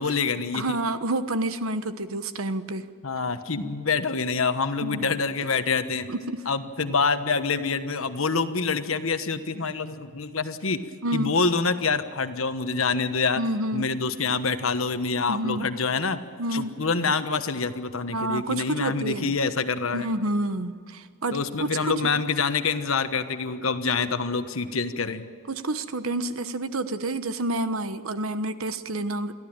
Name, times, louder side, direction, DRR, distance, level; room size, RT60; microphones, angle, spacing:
voice 1, 0.0-0.8 3.0-6.1 6.5-10.8 11.1-13.4 13.7-16.2 16.5-20.1 21.3-25.2, left 4 dB, 80° left, 10 dB, 1.3 m, -26 dB
voice 2, 0.5-2.9 4.8-5.2 6.1-6.4 6.8-6.9 11.0-11.3 13.4-13.9 15.2-15.7 16.4-16.8 18.1-19.3 19.9-22.1 25.5-29.3, right 1 dB, 90° right, 11 dB, 1.2 m, -29 dB
23.0 x 15.0 x 8.9 m, 2.1 s
head